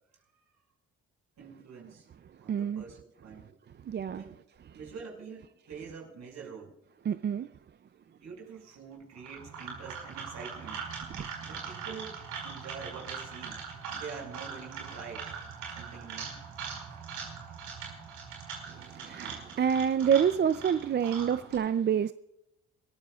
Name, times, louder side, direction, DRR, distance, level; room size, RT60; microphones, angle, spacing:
voice 1, 1.4-2.1 2.4-3.5 4.1-4.4 4.7-6.7 8.0-10.8 11.4-12.2 12.4-13.6 13.9-16.5, right 5 dB, 65° right, 6.2 m, -46 dB
voice 2, 2.5-2.8 3.9-4.2 7.1-7.5 11.2-11.3 18.7-22.1, right 8 dB, 35° right, 0.5 m, -27 dB
sound 1, 9.2-21.5, right 6 dB, 90° right, 5.2 m, -41 dB
26.5 x 14.5 x 2.4 m
cardioid pair, 90°, 30 cm